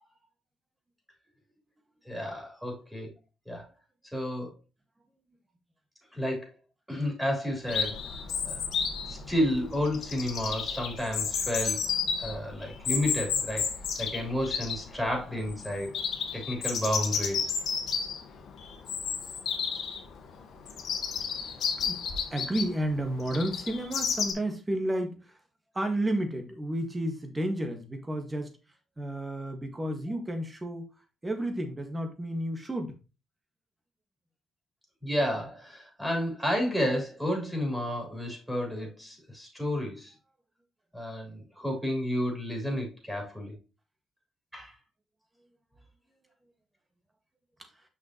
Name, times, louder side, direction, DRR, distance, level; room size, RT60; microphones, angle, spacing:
voice 1, 2.1-3.1 3.5-3.6 4.1-4.5 6.1-6.5 6.9-8.0 8.4-8.6 9.1-11.8 12.2-16.0 16.3-17.5 35.0-40.1 40.9-43.5 44.5-44.7, equal, 5° right, 3.6 m, -31 dB
Chirp tweet, 7.7-24.3, left 6 dB, 70° left, 1.5 m, -32 dB
voice 2, 21.3-25.4 25.7-28.5 29.0-30.9 31.2-32.9 47.6-47.7, right 1 dB, 20° right, 1.8 m, -32 dB
6.3 x 5.8 x 3.0 m
cardioid pair, 85°, 0 cm